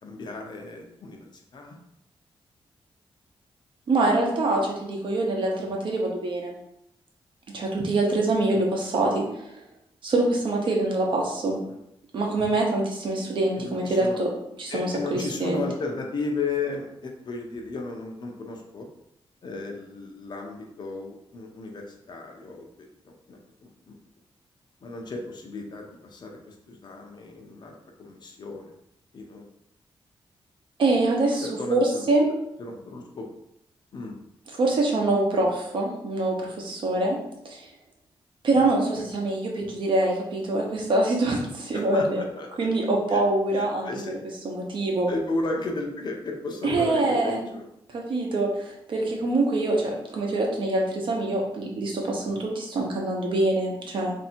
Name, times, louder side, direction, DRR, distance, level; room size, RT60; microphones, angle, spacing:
voice 1, 0.0-1.8 8.5-8.7 11.7-11.8 13.6-14.2 14.7-18.9 19.4-24.0 24.8-28.7 29.1-29.5 31.4-32.1 32.6-33.3 33.9-34.2 39.0-39.1 41.7-42.5 43.1-43.2 43.5-44.2 45.1-47.7 49.1-49.3, left 3 dB, 50° left, 1 dB, 0.7 m, -34 dB
voice 2, 3.9-6.5 7.5-9.2 10.0-11.6 12.1-14.3 14.6-15.6 30.8-32.3 34.6-37.2 37.4-37.7 38.4-42.2 42.6-43.9 44.4-45.1 46.6-47.4 47.9-54.1, right 2 dB, 60° right, -1 dB, 0.9 m, -24 dB
3.4 x 2.7 x 4.3 m, 0.80 s
wide cardioid pair, 175°, 10 cm